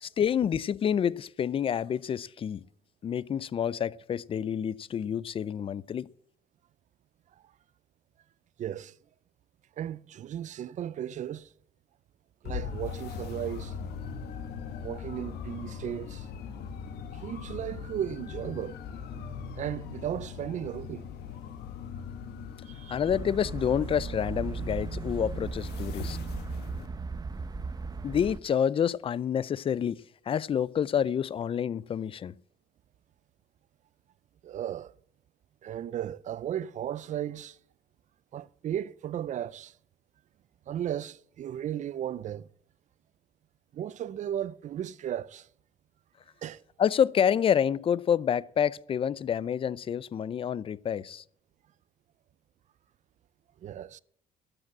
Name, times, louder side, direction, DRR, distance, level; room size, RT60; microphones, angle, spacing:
voice 1, 0.0-2.6 3.0-6.1 22.9-26.2 28.0-30.0 30.3-32.3 46.8-51.2, left 8 dB, 35° left, 0.4 m, -28 dB
voice 2, 8.6-8.9 9.8-11.5 12.4-13.7 14.8-16.3 17.2-18.8 19.6-21.1 22.6-23.0 34.4-34.9 35.6-37.6 38.3-39.8 40.7-42.5 43.7-45.5 46.4-46.6 53.6-54.0, right 10 dB, 45° right, 0.5 m, -35 dB
sound 1, 12.4-26.9, left 7 dB, 75° left, 1.3 m, -40 dB
sound 2, 23.0-28.4, right 4 dB, 25° right, 0.8 m, -36 dB
12.0 x 7.8 x 7.4 m
cardioid pair, 110°, 17 cm